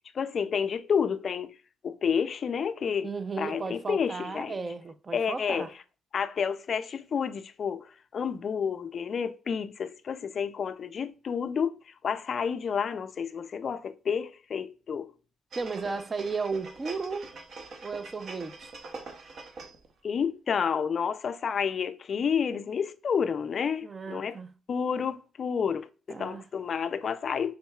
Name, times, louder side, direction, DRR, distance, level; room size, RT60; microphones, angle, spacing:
voice 1, 0.1-1.6 1.8-4.6 5.1-5.7 6.1-15.1 20.0-24.4 24.7-27.6, left 6 dB, 45° left, 0.4 m, -30 dB
voice 2, 3.0-5.7 15.6-17.3 17.8-18.7 23.8-24.5 26.1-26.4, right 4 dB, 25° right, 0.4 m, -34 dB
sound 1, 15.5-19.9 20.3-20.4, right 3 dB, 55° right, 0.8 m, -44 dB
6.2 x 3.6 x 2.3 m
cardioid pair, 130°, 0 cm